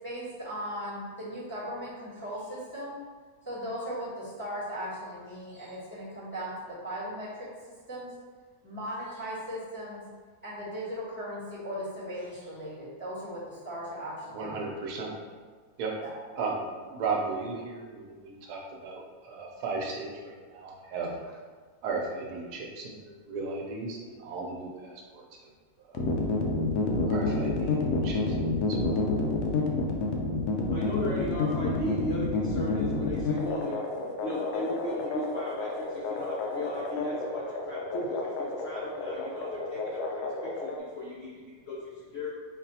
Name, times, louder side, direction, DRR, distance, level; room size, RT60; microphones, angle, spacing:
voice 1, 0.0-3.0 3.4-7.5 7.9-8.1 8.6-10.0 10.4-14.7 16.0-16.1, equal, 10° left, -9 dB, 1.0 m, -38 dB
voice 2, 14.3-15.1 15.8-16.0 16.4-21.4 21.8-25.5 25.8-26.1 27.1-29.1, right 4 dB, 80° right, -1 dB, 1.2 m, -36 dB
sound 1, 25.9-40.8, left 3 dB, 85° left, 1.1 m, -29 dB
voice 3, 30.7-41.8 42.1-42.3, left 1 dB, 65° left, -5 dB, 0.6 m, -36 dB
5.3 x 2.5 x 2.7 m, 1.5 s
omnidirectional pair, 1.7 m